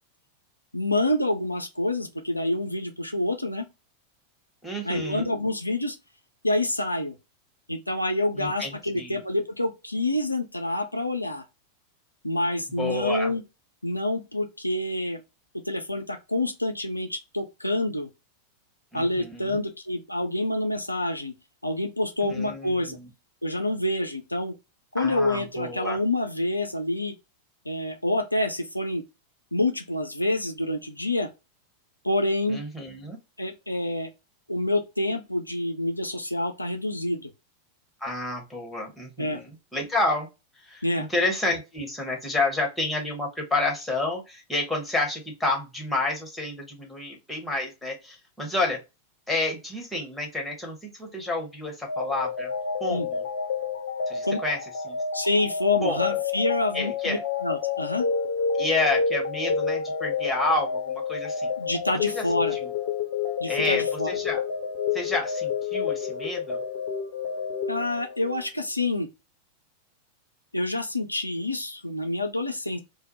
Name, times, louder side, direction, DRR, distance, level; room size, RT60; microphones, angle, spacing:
voice 1, 0.7-3.7 4.8-6.0 6.4-7.1 7.7-11.5 12.2-13.4 13.8-15.2 15.7-18.1 18.9-21.3 21.6-23.0 23.4-24.5 24.9-27.1 27.7-29.0 29.5-31.3 32.0-32.6 33.4-34.1 34.5-37.3 39.2-39.4 40.8-41.1 52.9-53.1 54.2-54.4 55.1-58.1 61.6-62.6 63.4-64.1 67.7-69.1 70.5-72.8, left 1 dB, 85° left, 0.3 m, -27 dB
voice 2, 4.6-5.3 8.4-9.2 12.8-13.3 18.9-19.6 22.2-23.1 25.0-26.0 32.5-33.2 38.0-40.3 40.6-40.8 41.1-48.8 49.3-52.5 52.8-53.2 54.1-54.6 54.8-55.0 55.8-56.0 56.7-57.2 58.6-61.5 62.1-62.2 62.5-62.7 63.5-64.4 64.9-66.6, left 2 dB, 5° left, 0.9 m, -29 dB
sound 1, 51.9-68.5, left 6 dB, 50° left, 0.7 m, -29 dB
2.2 x 2.0 x 2.8 m
figure-of-eight pair, 90°, 0 cm